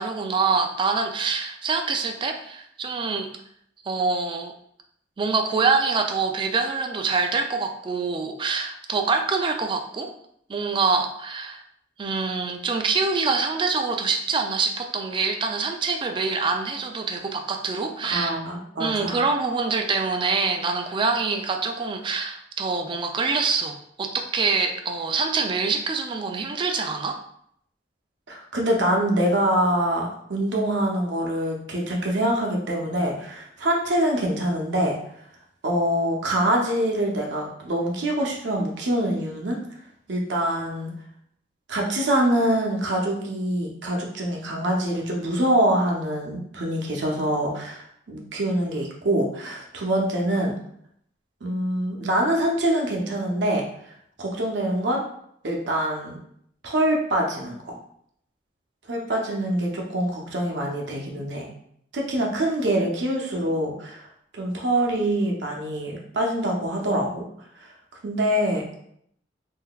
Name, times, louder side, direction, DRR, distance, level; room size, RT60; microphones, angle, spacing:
voice 1, 0.0-3.3 3.8-4.5 5.2-10.1 10.5-11.6 12.0-18.4 18.8-27.2, right 4 dB, 25° right, 5 dB, 0.3 m, -25 dB
voice 2, 18.0-19.2 28.3-34.9 35.6-39.6 40.1-40.9 41.7-50.5 51.4-53.6 54.2-55.0 55.4-56.2 56.6-57.7 58.9-61.5 61.9-64.1 64.3-67.2 67.6-67.7 68.0-68.7, right 1 dB, 70° right, -1 dB, 0.7 m, -25 dB
3.7 x 2.6 x 2.3 m, 0.69 s
head